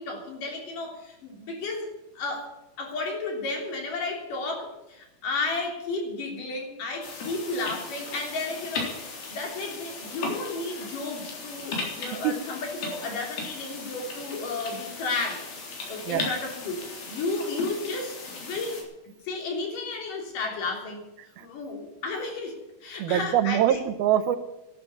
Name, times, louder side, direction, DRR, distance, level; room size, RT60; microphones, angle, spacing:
voice 1, 0.0-2.5 2.8-15.5 15.9-18.1 18.4-18.8 19.2-21.0 21.4-23.8, left 3 dB, 60° left, 1 dB, 4.8 m, -33 dB
sound 1, 7.0-18.8, left 4 dB, 75° left, 5.4 m, -37 dB
voice 2, 23.0-24.4, right 11 dB, 85° right, 11 dB, 2.9 m, -23 dB
12.5 x 11.5 x 9.1 m, 0.94 s
omnidirectional pair, 4.2 m